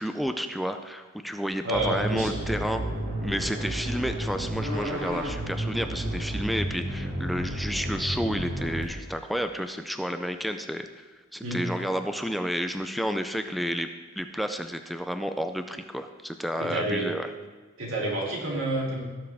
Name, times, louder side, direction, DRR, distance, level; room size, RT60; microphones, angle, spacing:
voice 1, 0.0-2.8 3.2-11.0 11.3-13.9 14.2-17.3, equal, ahead, 7 dB, 0.4 m, -31 dB
voice 2, 1.6-2.5 11.4-11.6 16.6-17.1 17.8-19.0, right 1 dB, 85° right, -3 dB, 2.9 m, -29 dB
sound 1, 1.7-8.8, right 1 dB, 60° right, 2.1 m, -31 dB
17.5 x 7.3 x 3.5 m, 1.3 s
head